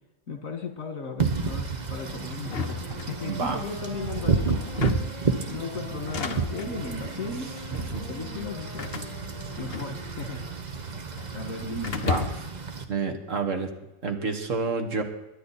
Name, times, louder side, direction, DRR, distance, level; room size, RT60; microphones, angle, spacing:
voice 1, 0.3-9.2 9.6-10.4 11.3-12.0, left 3 dB, 80° left, 6 dB, 2.4 m, -36 dB
Wind / Rain, 1.2-12.8, right 4 dB, 35° right, 1.1 m, -31 dB
sound 1, 2.4-3.6 4.6-5.3 5.9-6.8 7.6-8.0 8.8-10.3 10.6-11.3 11.8-12.6, left 5 dB, 50° left, 1.2 m, -34 dB
Wind instrument woodwind instrument, 2.6-10.7, left 2 dB, 25° left, 4.0 m, -45 dB
voice 2, 3.2-3.6 7.7-8.0 12.1-12.2 12.9-13.7 14.0-15.0, right 4 dB, 70° right, 5 dB, 2.0 m, -29 dB
22.0 x 9.9 x 4.2 m, 0.95 s
omnidirectional pair, 1.4 m